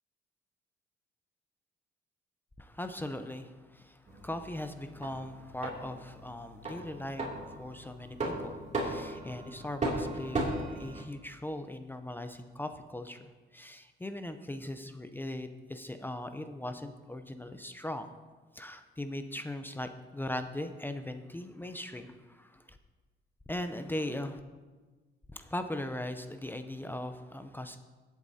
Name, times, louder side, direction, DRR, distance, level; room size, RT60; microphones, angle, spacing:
voice 1, 2.6-18.1 18.5-22.8 23.5-24.4 25.3-27.8, left 1 dB, 10° left, 8 dB, 0.6 m, -39 dB
sound 1, 4.1-11.0, right 2 dB, 35° right, 2.6 m, -37 dB
15.5 x 8.3 x 2.8 m, 1.3 s
cardioid pair, 90°, 20 cm